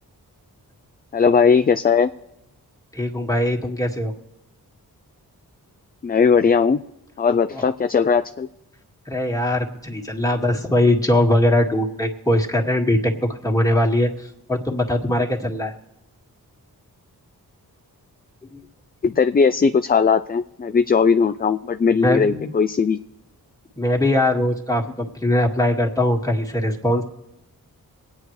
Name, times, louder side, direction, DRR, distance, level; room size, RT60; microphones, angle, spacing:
voice 1, 1.1-2.1 6.0-6.8 7.2-8.5 19.0-23.0, left 5 dB, 25° left, 10 dB, 0.4 m, -18 dB
voice 2, 2.9-4.1 7.5-7.7 9.1-15.7 18.5-18.7 22.0-22.5 23.8-27.0, left 1 dB, 10° left, 1 dB, 2.0 m, -21 dB
22.5 x 9.4 x 3.2 m, 0.89 s
cardioid pair, 45°, 37 cm